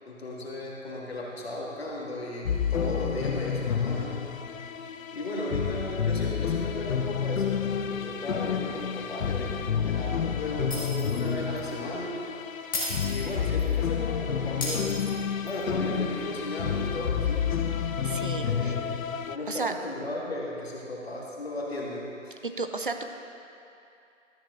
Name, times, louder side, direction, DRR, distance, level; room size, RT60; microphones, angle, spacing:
voice 1, 0.1-4.3 5.1-12.2 13.0-15.1 15.4-17.6 18.4-19.0 19.3-22.4, left 1 dB, 50° left, -3 dB, 1.7 m, -35 dB
sound 1, 2.4-19.4, left 7 dB, 85° left, 0.6 m, -30 dB
Shatter, 10.7-11.3 11.6-11.7 12.7-13.7 14.6-15.6, left 2 dB, 15° left, 1.1 m, -34 dB
voice 2, 18.0-18.8 19.5-19.7 22.4-23.0, right 3 dB, 40° right, 6 dB, 0.5 m, -33 dB
13.0 x 8.7 x 2.5 m, 2.7 s
figure-of-eight pair, 165°, 39 cm